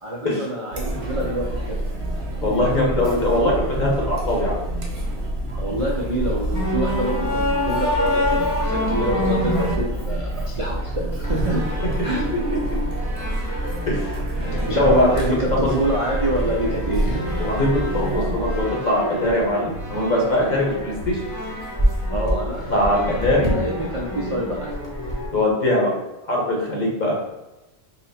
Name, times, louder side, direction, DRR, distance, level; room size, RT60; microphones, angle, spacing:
voice 1, 0.0-1.8 5.6-11.6 12.0-12.3 14.4-17.2 22.1-23.0 23.2-24.8, right 1 dB, 45° right, -3 dB, 0.4 m, -26 dB
Chatter, 0.7-18.6, right 1 dB, 85° right, 1.2 m, -27 dB
voice 2, 2.4-4.6 13.9-15.1 15.5-15.7 17.4-21.2 22.7-23.5 25.3-25.9 26.3-27.2, left 1 dB, 45° left, -3 dB, 1.0 m, -21 dB
sound 1, 6.5-9.7 11.2-25.3, left 1 dB, 20° left, 0.8 m, -27 dB
4.0 x 2.0 x 4.0 m, 1.0 s
omnidirectional pair, 1.1 m